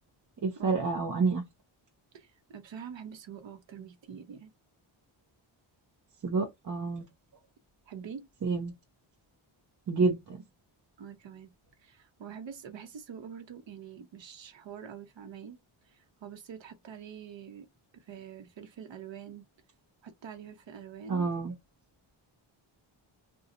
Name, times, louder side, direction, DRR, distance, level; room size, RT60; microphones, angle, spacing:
voice 1, 0.4-1.4 6.2-7.1 8.4-8.7 9.9-10.4 21.1-21.5, right 4 dB, 40° right, 0.7 m, -28 dB
voice 2, 2.1-4.5 7.9-8.3 11.0-11.5 11.8-15.6 15.8-17.7 17.9-19.4 20.0-21.3, right 7 dB, 65° right, 0.9 m, -45 dB
2.7 x 2.3 x 3.9 m
cardioid pair, 95°, 48 cm